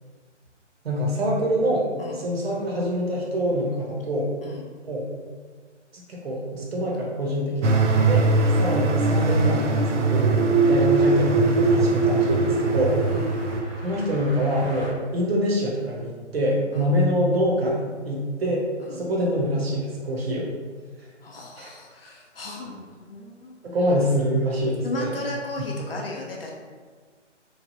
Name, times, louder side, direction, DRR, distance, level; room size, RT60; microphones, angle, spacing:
voice 1, 0.8-1.9 2.1-4.3 4.8-5.1 5.9-8.3 8.6-10.4 10.7-13.0 13.8-18.6 18.9-20.5 21.6-21.7 23.6-25.1, equal, 55° right, -3 dB, 0.9 m, -25 dB
sound 1, 7.6-13.6, right 3 dB, 75° right, 0.5 m, -21 dB
sound 2, 9.7-14.9, equal, 10° right, 0.6 m, -40 dB
voice 2, 21.2-23.5 24.8-26.5, left 2 dB, 55° left, -1 dB, 0.5 m, -35 dB
3.1 x 2.3 x 2.6 m, 1.5 s
figure-of-eight pair, 150°, 36 cm